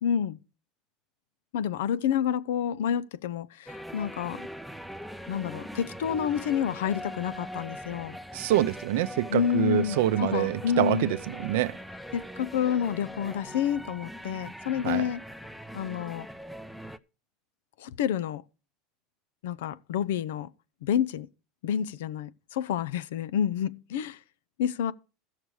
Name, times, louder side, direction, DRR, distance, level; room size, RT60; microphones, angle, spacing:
voice 1, 0.0-0.4 1.5-4.5 5.3-8.2 9.3-11.2 12.1-15.2 15.7-16.3 17.8-18.4 19.4-20.5 20.8-21.3 21.6-24.2 24.6-24.9, left 8 dB, 80° left, 0.5 m, -29 dB
sound 1, 3.7-17.0, equal, ahead, 0.5 m, -41 dB
voice 2, 8.3-11.8 14.8-15.0, right 14 dB, 75° right, 0.5 m, -26 dB
14.5 x 6.6 x 4.7 m
supercardioid pair, 105°, 0 cm